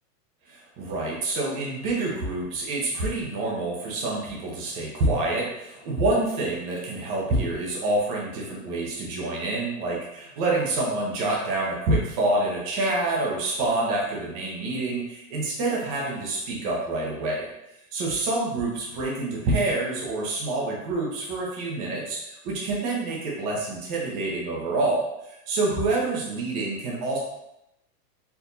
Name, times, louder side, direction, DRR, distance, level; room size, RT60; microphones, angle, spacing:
voice 1, 0.5-17.5 17.9-25.1 25.5-27.2, right 2 dB, 25° right, -3 dB, 0.9 m, -27 dB
4.6 x 3.4 x 2.6 m, 0.85 s
supercardioid pair, 165°, 47 cm